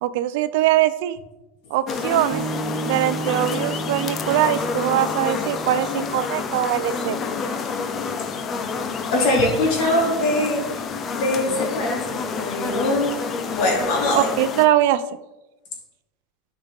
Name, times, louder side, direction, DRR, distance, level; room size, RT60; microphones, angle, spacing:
voice 1, 0.0-1.2 1.7-2.4 2.8-7.2 14.1-15.0, right 13 dB, 65° right, 13 dB, 0.5 m, -21 dB
sound 1, 1.9-14.7, left 5 dB, 25° left, 0.7 m, -29 dB
sound 2, 2.3-6.7, right 3 dB, 15° right, 1.4 m, -33 dB
voice 2, 8.8-10.7 11.1-13.2 13.5-14.3, left 1 dB, 55° left, -2 dB, 3.1 m, -22 dB
12.0 x 5.2 x 3.5 m, 1.0 s
supercardioid pair, 150°, 0 cm